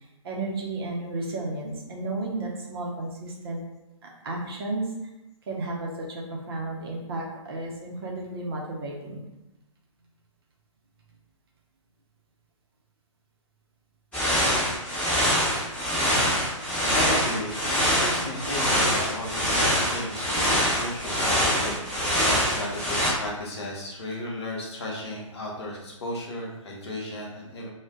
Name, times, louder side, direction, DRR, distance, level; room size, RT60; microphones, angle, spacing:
voice 1, 0.2-3.6 4.0-4.9 5.5-9.2, right 2 dB, 45° right, -1 dB, 0.7 m, -33 dB
sound 1, 14.1-23.1, equal, 5° left, 1.0 m, -24 dB
voice 2, 16.9-21.8 22.2-27.7, left 1 dB, 55° left, -3 dB, 0.8 m, -34 dB
2.4 x 2.2 x 3.6 m, 0.96 s
figure-of-eight pair, 125°, 17 cm